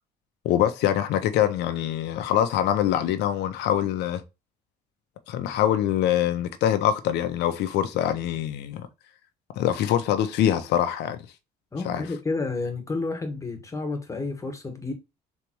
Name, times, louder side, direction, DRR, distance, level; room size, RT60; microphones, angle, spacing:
voice 1, 0.4-4.2 5.3-8.9 9.6-11.3 11.8-12.0, left 11 dB, 80° left, 0.8 m, -24 dB
voice 2, 11.7-14.9, left 3 dB, 20° left, 1.4 m, -30 dB
4.0 x 3.4 x 3.0 m
cardioid pair, 110°, 17 cm